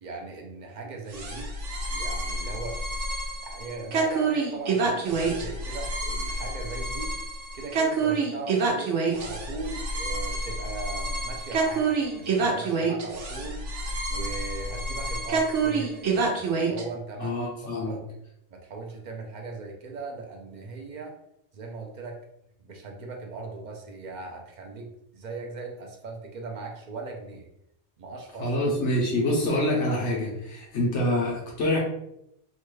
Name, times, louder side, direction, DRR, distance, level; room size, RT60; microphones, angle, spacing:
voice 1, 0.0-1.5 1.9-3.0 3.4-7.1 7.5-13.6 14.1-17.4 17.8-18.0 18.5-21.1 21.5-22.2 22.6-27.5 28.0-28.5 28.8-29.4, right 3 dB, 55° right, 1 dB, 0.5 m, -39 dB
sound 1, 1.1-16.8, right 3 dB, 90° right, 1.0 m, -28 dB
voice 2, 17.2-17.9 28.4-31.8, left 1 dB, 85° left, -3 dB, 1.2 m, -26 dB
3.1 x 2.2 x 3.1 m, 0.79 s
omnidirectional pair, 1.2 m